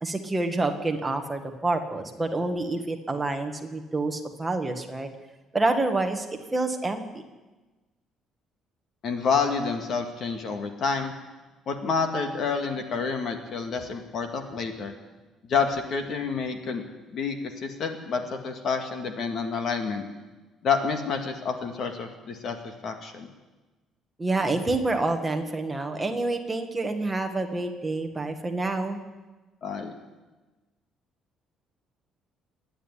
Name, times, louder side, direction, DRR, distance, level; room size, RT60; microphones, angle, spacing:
voice 1, 0.0-5.1 5.5-6.3 6.5-7.2 24.2-29.0, right 2 dB, 10° right, 4 dB, 1.7 m, -27 dB
voice 2, 9.0-11.1 11.7-14.9 15.5-16.8 17.1-20.0 20.6-23.3 29.6-29.9, left 5 dB, 45° left, 6 dB, 2.2 m, -28 dB
27.0 x 10.5 x 9.9 m, 1.2 s
cardioid pair, 170°, 0 cm